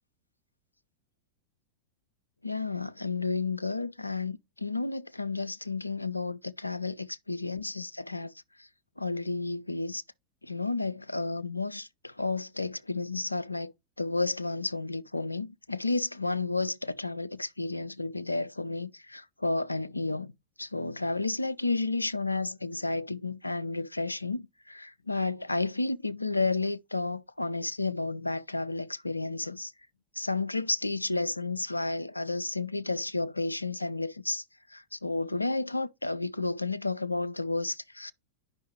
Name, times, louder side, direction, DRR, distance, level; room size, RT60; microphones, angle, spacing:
voice 1, 2.4-8.3 9.0-10.0 10.4-13.7 14.0-20.3 20.6-29.7 30.2-34.4 34.7-38.1, left 3 dB, 85° left, 0.3 m, -32 dB
9.3 x 5.4 x 3.1 m
figure-of-eight pair, 90°, 0 cm